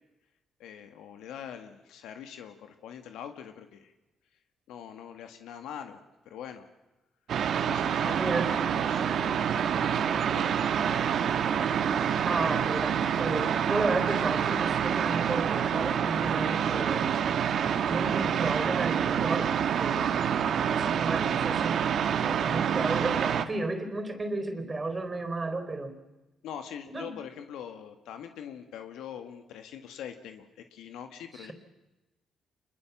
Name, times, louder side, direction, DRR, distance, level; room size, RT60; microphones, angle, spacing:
voice 1, 0.6-3.9 4.7-6.0 6.2-6.7 7.7-10.5 10.8-11.2 26.4-31.5, left 9 dB, 85° left, 7 dB, 1.8 m, -43 dB
sound 1, 7.3-23.5, right 8 dB, 65° right, 1.5 m, -27 dB
voice 2, 8.2-8.5 12.2-17.2 17.9-20.2 20.6-21.8 22.1-25.9 26.9-27.1 31.3-31.5, right 2 dB, 25° right, 9 dB, 4.2 m, -33 dB
26.0 x 22.0 x 7.4 m, 1.0 s
cardioid pair, 90°, 0 cm